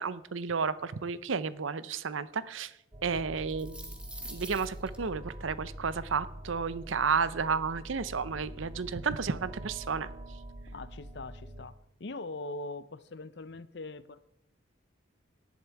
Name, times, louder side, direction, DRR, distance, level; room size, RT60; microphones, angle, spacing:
voice 1, 0.0-2.7 3.0-3.9 4.3-10.1, right 5 dB, 80° right, 0.7 m, -32 dB
sound 1, 2.9-11.7, right 1 dB, 25° right, 1.8 m, -45 dB
sound 2, 3.5-5.0, right 1 dB, 5° right, 1.7 m, -45 dB
voice 2, 10.7-14.2, left 2 dB, 60° left, 0.6 m, -42 dB
18.0 x 11.0 x 4.7 m
head